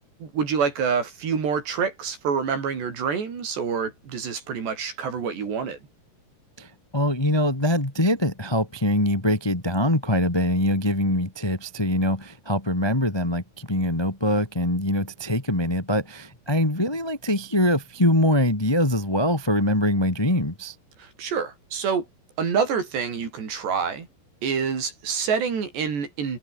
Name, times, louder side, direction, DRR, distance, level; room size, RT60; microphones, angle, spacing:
voice 1, 0.2-5.8 21.0-22.1 22.4-24.1 24.4-26.4, right 6 dB, 90° right, 7.2 m, -27 dB
voice 2, 6.6-20.7, left 1 dB, 40° left, 0.3 m, -23 dB
omnidirectional pair, 4.7 m